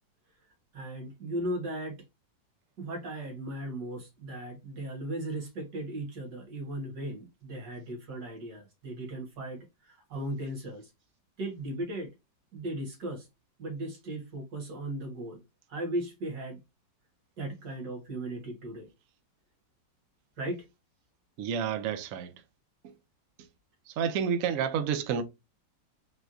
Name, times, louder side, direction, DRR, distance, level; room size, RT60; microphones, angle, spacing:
voice 1, 0.7-2.0 2.8-10.9 11.4-12.1 12.5-13.3 13.6-15.4 15.7-16.6 17.4-18.9 20.4-20.7, right 1 dB, 60° right, 1.8 m, -37 dB
voice 2, 21.4-22.3 23.9-25.2, right 7 dB, 85° right, 0.7 m, -29 dB
4.3 x 2.3 x 2.5 m
omnidirectional pair, 2.0 m